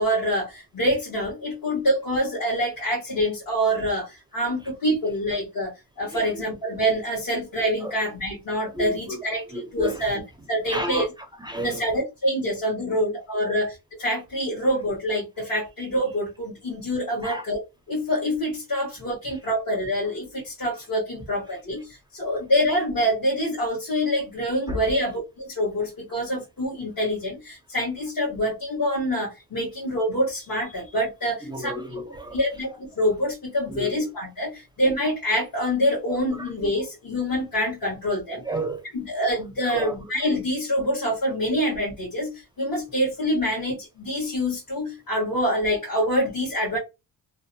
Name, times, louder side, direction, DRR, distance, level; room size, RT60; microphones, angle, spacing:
voice 1, 0.0-9.4 9.7-10.2 10.5-11.0 11.6-17.6 17.9-31.7 32.3-38.4 38.9-46.8, equal, 50° left, -4 dB, 1.2 m, -26 dB
voice 2, 6.0-6.4 7.8-7.9 8.6-10.1 10.7-11.1 11.4-12.0 12.9-13.0 13.5-13.6 17.2-17.5 19.3-19.4 24.7-24.8 31.4-32.4 33.7-34.1 36.1-36.5 38.3-38.9 39.6-40.3 43.6-43.7, right 1 dB, 10° right, 4 dB, 0.5 m, -33 dB
2.6 x 2.1 x 2.6 m, 0.25 s
cardioid pair, 90°, 42 cm